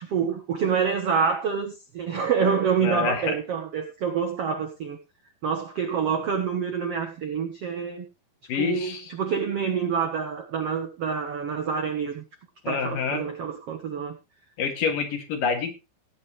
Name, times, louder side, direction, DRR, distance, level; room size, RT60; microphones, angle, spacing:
voice 1, 0.0-5.0 5.4-8.0 8.6-12.2 12.7-14.2, right 6 dB, 70° right, 1.4 m, -27 dB
voice 2, 2.8-3.4 8.5-9.1 12.6-13.2 14.6-15.8, left 5 dB, 60° left, 3.3 m, -27 dB
17.5 x 9.3 x 3.2 m
omnidirectional pair, 4.6 m